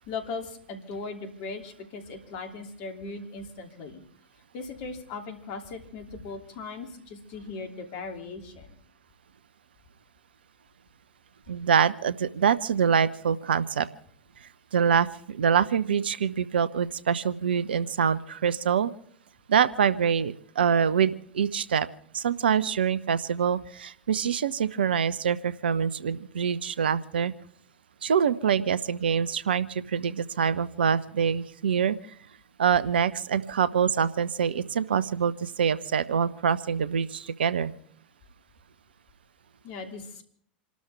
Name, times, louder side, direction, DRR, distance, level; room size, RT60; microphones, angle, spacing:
voice 1, 0.1-4.0 4.5-8.8 39.6-40.2, left 4 dB, 50° left, 4 dB, 2.9 m, -38 dB
voice 2, 11.5-13.9 14.7-18.9 19.5-21.9 22.1-27.3 28.0-32.0 32.6-37.7, right 7 dB, 75° right, 16 dB, 0.8 m, -25 dB
28.0 x 12.5 x 3.5 m, 0.63 s
figure-of-eight pair, 90°, 6 cm